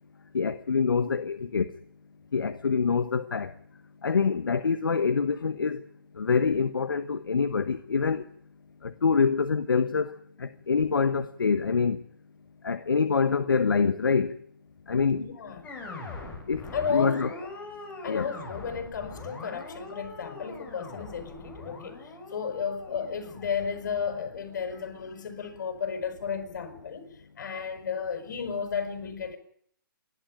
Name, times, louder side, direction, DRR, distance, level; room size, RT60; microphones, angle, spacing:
voice 1, 0.3-1.7 2.3-3.5 4.0-5.8 6.2-8.2 8.8-12.0 12.6-14.4 14.9-15.2 16.5-16.6 16.9-17.3 18.1-18.3, left 5 dB, 80° left, 1.2 m, -25 dB
voice 2, 15.1-15.6 16.1-16.2 16.7-17.4 18.0-29.4, left 6 dB, 55° left, 6.1 m, -33 dB
sound 1, 15.6-24.9, left 3 dB, 10° left, 5.7 m, -43 dB
28.5 x 12.0 x 9.0 m
hypercardioid pair, 140°, 11 cm